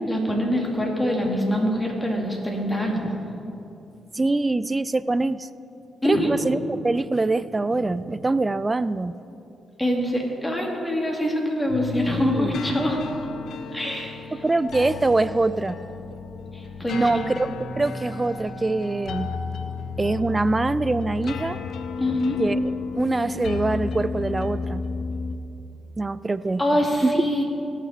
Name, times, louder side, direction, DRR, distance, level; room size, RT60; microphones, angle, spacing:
voice 1, 0.1-3.1 6.0-6.3 9.8-13.0 13.7-14.3 16.5-17.2 19.8-19.9 22.0-22.4 26.6-27.4, equal, 15° left, -1 dB, 2.6 m, -24 dB
voice 2, 4.1-5.5 6.0-9.2 11.9-12.5 14.3-15.8 16.9-17.5 17.8-19.3 20.0-21.6 22.4-24.8 26.0-27.1, right 2 dB, 25° right, 16 dB, 0.3 m, -24 dB
sound 1, 11.7-25.4, left 4 dB, 75° left, 0.6 m, -33 dB
17.0 x 6.0 x 4.3 m, 2.8 s
supercardioid pair, 55°, 0 cm